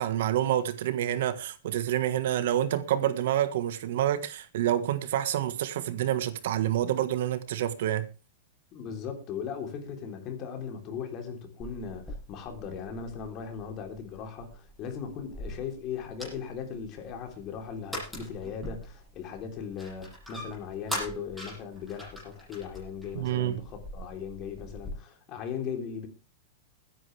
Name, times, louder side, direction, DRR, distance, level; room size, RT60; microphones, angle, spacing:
voice 1, 0.0-8.1 23.1-23.6, right 12 dB, 70° right, 1.5 m, -28 dB
voice 2, 8.7-26.1, left 7 dB, 35° left, 3.7 m, -38 dB
sound 1, 11.6-24.9, equal, ahead, 7.7 m, -43 dB
21.0 x 10.0 x 3.5 m
supercardioid pair, 145°, 0 cm